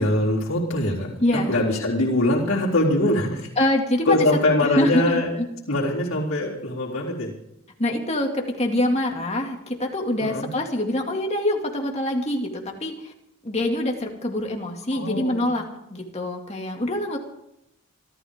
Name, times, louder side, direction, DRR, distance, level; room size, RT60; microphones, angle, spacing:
voice 1, 0.0-3.5 4.0-5.3 5.7-7.3 10.2-10.5 14.9-15.5, left 1 dB, 65° left, -6 dB, 3.9 m, -23 dB
voice 2, 1.2-1.5 3.6-4.3 4.8-5.5 7.8-13.1 13.4-17.2, left 1 dB, 30° left, 2 dB, 2.4 m, -25 dB
27.5 x 13.0 x 3.7 m, 0.83 s
head